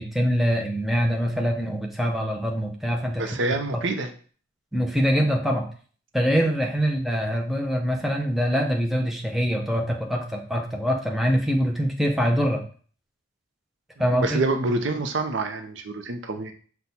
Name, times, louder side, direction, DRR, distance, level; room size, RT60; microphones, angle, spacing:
voice 1, 0.0-3.3 3.7-3.8 4.7-5.7 6.1-12.6 14.0-14.4, equal, ahead, 1 dB, 0.5 m, -24 dB
voice 2, 3.2-4.1 14.2-16.5, right 2 dB, 65° right, 7 dB, 0.5 m, -26 dB
5.9 x 2.2 x 4.0 m, 0.43 s
head